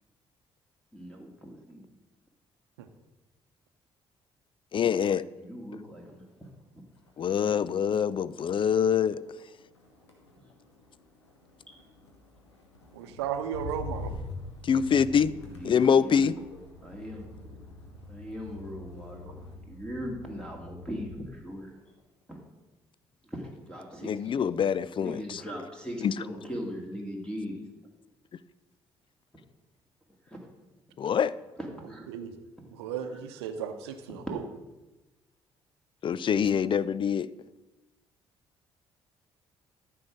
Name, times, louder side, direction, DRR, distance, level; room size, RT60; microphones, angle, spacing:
voice 1, 0.9-1.8 5.4-6.3 11.7-11.8 15.1-16.6 16.8-17.2 17.5-17.6 18.1-21.7 22.3-22.4 23.2-24.4 25.0-27.6 30.3-30.4 31.6-32.1, equal, 5° left, 0 dB, 2.2 m, -40 dB
voice 2, 4.7-5.2 7.2-9.2 14.6-15.3 15.6-16.3 24.0-25.4 26.0-26.1 31.0-31.3 36.0-37.3, left 7 dB, 35° left, 18 dB, 0.4 m, -25 dB
Motor vehicle (road), 6.3-6.6 6.9-21.4 21.8-22.2, left 2 dB, 85° left, 1.2 m, -45 dB
voice 3, 12.9-14.1 24.0-24.2 32.1-32.3 32.7-34.4, right 8 dB, 75° right, 9 dB, 0.8 m, -35 dB
13.5 x 4.7 x 6.2 m, 1.1 s
figure-of-eight pair, 45°, 14 cm